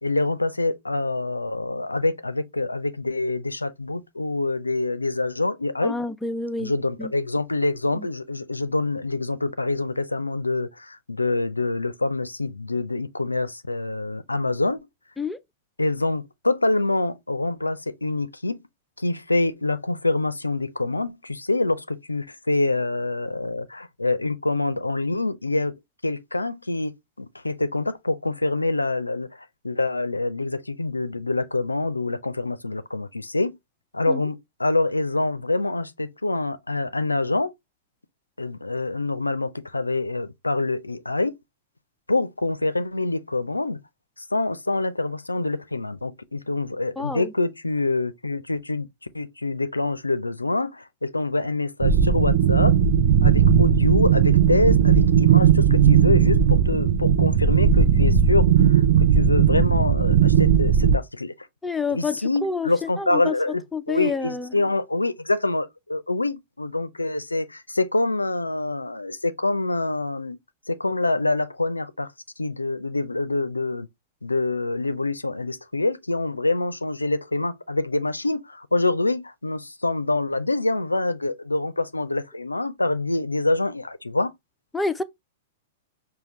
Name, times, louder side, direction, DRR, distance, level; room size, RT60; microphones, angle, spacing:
voice 1, 0.0-6.0 6.6-14.8 15.8-18.6 19.0-25.7 26.0-26.9 27.2-33.6 33.9-37.5 38.4-41.3 42.1-43.8 44.2-48.9 49.1-52.8 53.2-61.3 61.9-70.4 70.7-72.1 72.4-73.9 74.2-84.3, left 2 dB, 85° left, 0.4 m, -26 dB
voice 2, 5.8-6.7 7.0-7.1 8.0-8.1 15.2-15.4 34.1-34.2 47.0-47.3 61.6-62.2 62.4-63.4 63.7-64.6 84.7-85.0, left 4 dB, 5° left, 0.4 m, -28 dB
sound 1, 51.8-61.0, right 8 dB, 50° right, 0.5 m, -17 dB
5.6 x 2.2 x 3.0 m
figure-of-eight pair, 100°, 0 cm